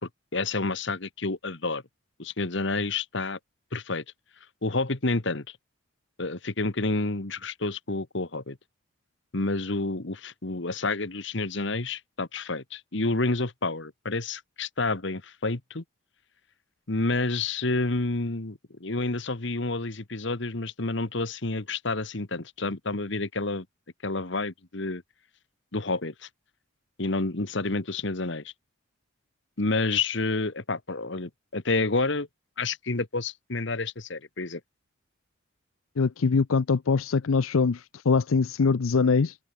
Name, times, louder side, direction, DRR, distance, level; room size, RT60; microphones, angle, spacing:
voice 1, 0.0-1.8 2.2-3.4 3.7-4.0 4.6-5.6 6.2-8.6 9.3-15.8 16.9-23.7 24.0-25.0 25.7-26.3 27.0-28.5 29.6-32.3 32.6-34.6, left 3 dB, 60° left, 1.5 m, -29 dB
voice 2, 36.0-39.4, left 4 dB, 80° left, 0.5 m, -23 dB
head